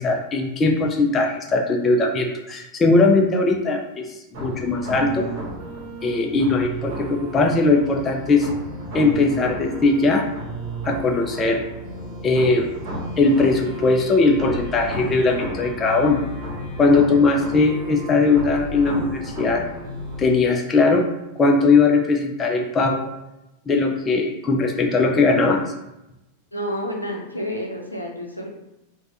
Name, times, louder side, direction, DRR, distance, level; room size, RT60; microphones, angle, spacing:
voice 1, 0.0-4.1 4.3-5.3 6.0-8.5 8.9-10.3 10.8-11.6 12.2-12.7 13.2-16.2 16.8-19.6 20.2-21.1 21.4-23.1 23.7-25.6, left 3 dB, 25° left, 2 dB, 0.3 m, -19 dB
sound 1, 4.3-20.3, right 1 dB, 50° right, 0.9 m, -33 dB
voice 2, 26.5-28.5, equal, 85° left, 0 dB, 0.5 m, -29 dB
3.3 x 2.1 x 2.5 m, 0.91 s
figure-of-eight pair, 90°, 0 cm